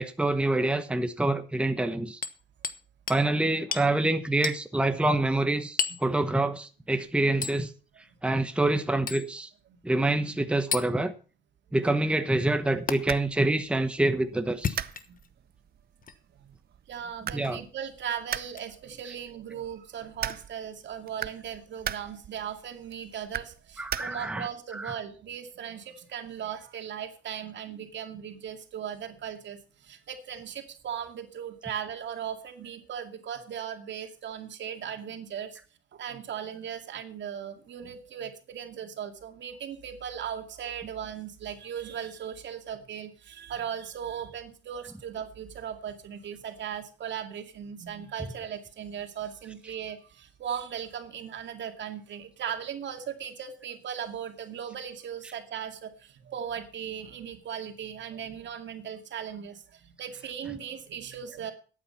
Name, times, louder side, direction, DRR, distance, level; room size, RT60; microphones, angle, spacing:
voice 1, 0.0-2.2 3.1-7.7 8.2-9.5 9.8-11.1 11.7-14.8 17.3-17.6 23.8-24.5 24.7-24.9, right 2 dB, 5° right, 1.0 m, -26 dB
Hammer, 2.2-2.8 3.1-3.2 3.7-3.9 4.4-4.6 5.8-6.1 7.4-7.6 9.1-9.3 10.7-10.9 12.9-13.0 14.5-15.3 16.0-16.2 17.4-17.6 18.5-18.7 20.3-20.4, left 6 dB, 45° left, 1.2 m, -32 dB
sound 1, 12.5-24.5, right 9 dB, 50° right, 0.8 m, -40 dB
voice 2, 16.9-35.6 35.9-61.5, right 8 dB, 65° right, 2.3 m, -38 dB
12.5 x 8.9 x 5.7 m
cardioid pair, 90°, 20 cm